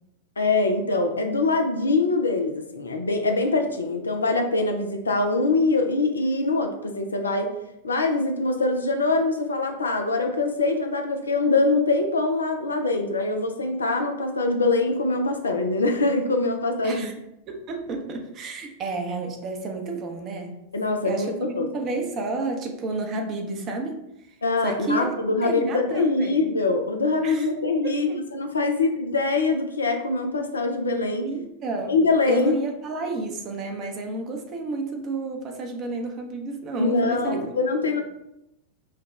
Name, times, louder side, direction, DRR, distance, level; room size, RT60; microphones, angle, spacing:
voice 1, 0.4-7.5 7.8-17.1 20.7-21.7 24.4-31.3 31.9-32.5 36.8-38.0, left 3 dB, 75° left, 5 dB, 0.5 m, -23 dB
voice 2, 17.5-20.6 21.0-24.0 24.6-25.1 25.4-26.4 27.2-27.5 27.8-28.2 31.2-32.0 32.3-37.4, right 3 dB, 35° right, 2 dB, 0.7 m, -31 dB
5.7 x 2.3 x 3.2 m, 0.83 s
figure-of-eight pair, 90°, 0 cm